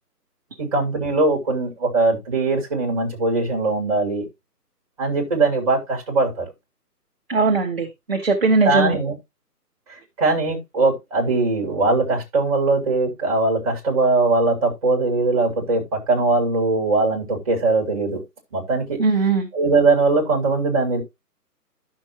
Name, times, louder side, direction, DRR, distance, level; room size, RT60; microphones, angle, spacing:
voice 1, 0.6-4.3 5.0-6.5 8.6-9.1 10.2-18.2 18.5-19.0 19.5-21.0, right 3 dB, 20° right, 1.9 m, -20 dB
voice 2, 7.3-9.0 19.0-19.5, right 3 dB, 35° right, 1.1 m, -19 dB
11.0 x 6.2 x 2.9 m
figure-of-eight pair, 165°, 49 cm